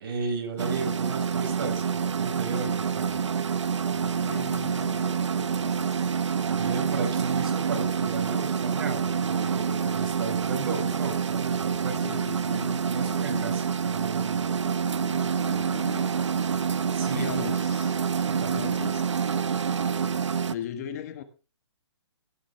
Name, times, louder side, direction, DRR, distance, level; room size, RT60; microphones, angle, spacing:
voice 1, 0.0-3.2 6.5-14.6 16.9-17.4 18.2-18.7, right 4 dB, 50° right, 5.0 m, -34 dB
sound 1, 0.6-20.5, right 7 dB, 90° right, 0.9 m, -27 dB
voice 2, 3.8-6.1 12.0-12.8 13.0-13.6 14.6-16.2 17.1-17.9 18.4-19.1 20.5-21.2, left 9 dB, 35° left, 1.5 m, -40 dB
16.5 x 10.0 x 3.4 m
hypercardioid pair, 160°, 15 cm